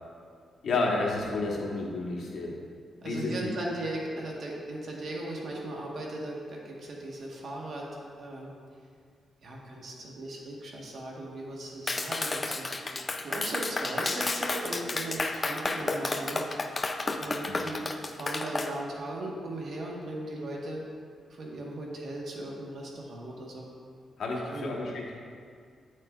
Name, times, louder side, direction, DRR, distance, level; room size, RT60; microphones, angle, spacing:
voice 1, 0.6-2.5 3.0-3.5 17.5-17.6 24.2-25.1, left 3 dB, 65° left, -2 dB, 1.2 m, -31 dB
voice 2, 3.0-8.5 9.4-12.7 13.2-16.4 17.2-17.8 18.1-20.8 21.3-23.7 24.5-24.8, right 1 dB, 60° right, -2 dB, 1.3 m, -37 dB
Clapping, 11.9-18.7, left 3 dB, 30° left, 0.4 m, -31 dB
8.7 x 6.5 x 2.4 m, 2.2 s
cardioid pair, 110°, 0 cm